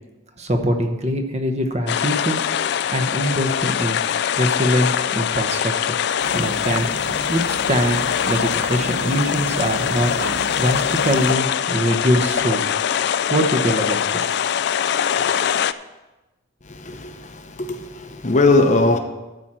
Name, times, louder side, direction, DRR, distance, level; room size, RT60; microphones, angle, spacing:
voice 1, 0.4-2.4 2.9-4.0 4.4-5.7 6.3-6.9 7.3-10.1 10.6-12.7 13.3-14.3, equal, 30° right, 0.9 m, -22 dB
sound 1, 1.9-15.7, left 8 dB, 55° left, 0.3 m, -23 dB
sound 2, 6.2-11.3, right 2 dB, 70° right, 0.8 m, -33 dB
voice 2, 16.6-19.0, left 2 dB, 35° left, 0.7 m, -20 dB
13.0 x 4.4 x 7.5 m
head